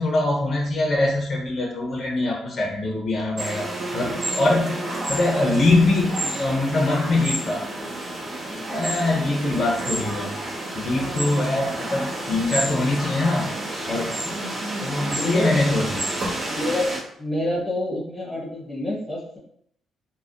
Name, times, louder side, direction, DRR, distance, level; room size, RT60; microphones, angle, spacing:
voice 1, 0.0-7.6 8.7-10.3 10.7-13.5 13.9-14.4 14.8-16.1, left 2 dB, 40° left, -2 dB, 0.7 m, -23 dB
sound 1, 3.4-17.0, right 1 dB, 45° right, 1.1 m, -30 dB
voice 2, 15.1-15.5 16.5-16.9 17.2-19.4, left 1 dB, 5° left, -8 dB, 1.2 m, -27 dB
3.3 x 2.2 x 2.5 m, 0.67 s
cardioid pair, 90°, 0 cm